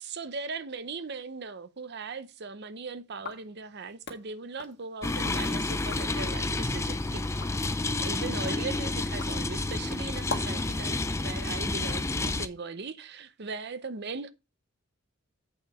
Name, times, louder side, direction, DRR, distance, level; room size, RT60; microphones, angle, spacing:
voice 1, 0.0-7.3 7.9-14.3, right 4 dB, 50° right, 0.7 m, -39 dB
sound 1, 3.1-5.4 5.8-6.2 6.7-10.7, left 3 dB, 50° left, 1.8 m, -43 dB
sound 2, 5.0-12.5, left 2 dB, 15° left, 0.4 m, -30 dB
8.7 x 5.1 x 4.7 m
head